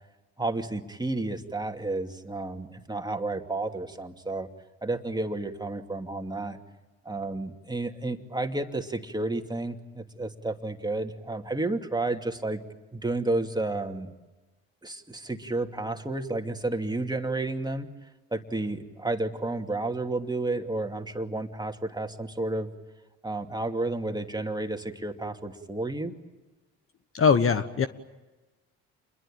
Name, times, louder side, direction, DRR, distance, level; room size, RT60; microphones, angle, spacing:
voice 1, 0.4-4.5 4.8-6.6 7.0-12.6 12.9-14.1 14.8-17.9 18.3-22.7 23.2-26.1, right 2 dB, 10° right, 4 dB, 2.7 m, -31 dB
voice 2, 27.1-27.9, left 6 dB, 35° left, 11 dB, 1.3 m, -21 dB
28.5 x 22.0 x 9.1 m, 1.1 s
hypercardioid pair, 60°, 36 cm